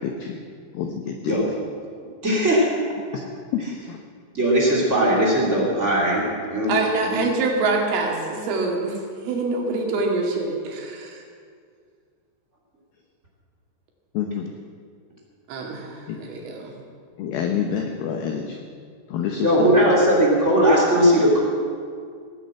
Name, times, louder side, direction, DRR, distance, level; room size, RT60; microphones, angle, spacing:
voice 1, 0.0-0.4 0.7-1.4 3.1-3.6 3.9-4.0 14.1-14.5 16.1-16.2 17.2-18.6 19.1-19.9, left 7 dB, 80° left, 4 dB, 2.2 m, -28 dB
voice 2, 2.2-2.7 4.3-6.2 6.5-6.7 7.0-7.2 19.4-21.4, equal, 20° right, -3 dB, 2.0 m, -18 dB
voice 3, 6.7-11.2 15.5-16.7, right 3 dB, 80° right, 0 dB, 4.7 m, -25 dB
18.5 x 9.7 x 7.6 m, 2.1 s
omnidirectional pair, 5.6 m